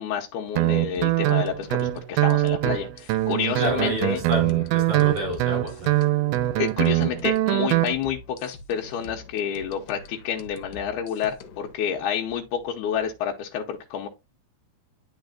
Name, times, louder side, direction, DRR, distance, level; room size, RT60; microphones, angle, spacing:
voice 1, 0.0-4.2 6.6-14.1, left 8 dB, 90° left, 2.2 m, -29 dB
Guitar, 0.6-7.9, right 17 dB, 90° right, 2.1 m, -23 dB
sound 1, 1.0-11.7, left 4 dB, 70° left, 1.9 m, -45 dB
voice 2, 3.6-6.1, equal, 55° right, 4.4 m, -29 dB
10.5 x 4.1 x 2.4 m
omnidirectional pair, 3.5 m